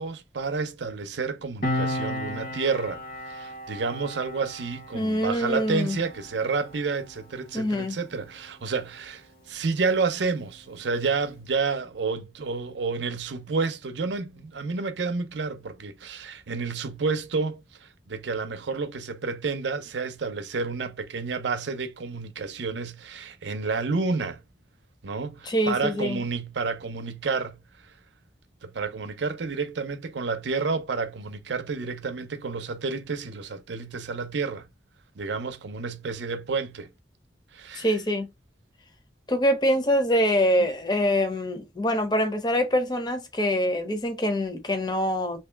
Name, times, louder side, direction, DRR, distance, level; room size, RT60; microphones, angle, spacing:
voice 1, 0.0-3.0 3.3-24.4 25.0-27.6 28.6-34.7 35.2-36.9 37.5-38.0, right 4 dB, 85° right, 0.6 m, -30 dB
Piano, 1.6-8.6 8.9-9.1, left 1 dB, 50° left, 0.9 m, -35 dB
voice 2, 4.9-6.0 7.5-8.0 25.5-26.2 37.8-38.3 39.3-45.4, equal, 25° left, 0.6 m, -24 dB
3.0 x 2.8 x 3.3 m
head